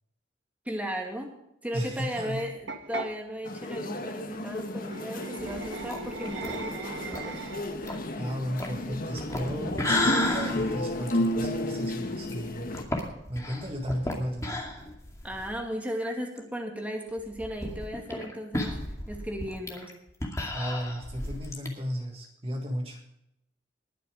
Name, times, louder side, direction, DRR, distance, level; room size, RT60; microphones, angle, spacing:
voice 1, 0.7-1.3 1.6-7.5 15.2-19.9, equal, 10° right, 1 dB, 2.2 m, -36 dB
voice 2, 1.7-2.4 8.2-12.7 13.3-14.7 20.5-23.0, equal, 30° right, 1 dB, 1.8 m, -34 dB
sound 1, 2.7-3.1 4.8-7.8, right 3 dB, 70° right, 1.4 m, -38 dB
sound 2, 3.5-12.8, left 1 dB, 50° left, 1.4 m, -33 dB
sound 3, 5.4-15.6 16.0-16.1 16.4-16.5 17.2-21.7, left 1 dB, 15° left, 2.3 m, -34 dB
20.5 x 6.9 x 4.9 m, 0.81 s
head